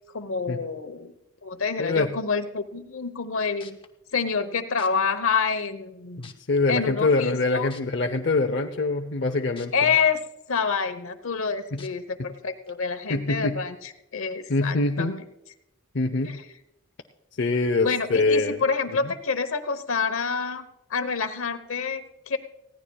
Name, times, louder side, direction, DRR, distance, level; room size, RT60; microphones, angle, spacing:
voice 1, 0.1-1.1 1.4-3.8 4.1-6.3 6.7-7.7 9.7-10.2 10.5-15.2 16.3-16.4 17.8-22.4, left 5 dB, 75° left, 10 dB, 1.0 m, -27 dB
voice 2, 1.8-2.1 6.2-9.9 11.7-11.8 13.1-13.6 14.5-15.2 15.9-16.4 17.4-18.6 19.0-19.1, left 3 dB, 55° left, 4 dB, 0.7 m, -24 dB
sound 1, 3.2-3.3 3.6-3.9 4.8-4.9 5.6-5.7 6.2-6.6 7.7-7.8 9.6-9.7 10.2-10.3 11.8-11.9 12.7-12.8, left 6 dB, 25° left, 0.8 m, -46 dB
19.5 x 16.0 x 2.3 m, 0.88 s
head